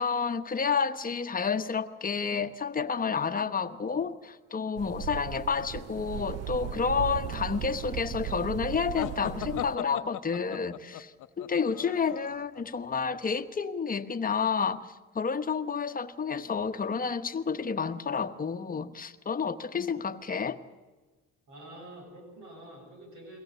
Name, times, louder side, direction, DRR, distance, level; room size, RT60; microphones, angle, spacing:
voice 1, 0.0-14.9 15.1-20.6, left 5 dB, 30° left, 1.1 m, -30 dB
sound 1, 4.8-9.8, right 11 dB, 55° right, 0.6 m, -37 dB
sound 2, 8.9-12.6, left 13 dB, 85° left, 0.8 m, -38 dB
voice 2, 21.5-23.4, right 1 dB, 80° right, 7.6 m, -47 dB
23.0 x 17.5 x 8.0 m
cardioid pair, 135°, 30 cm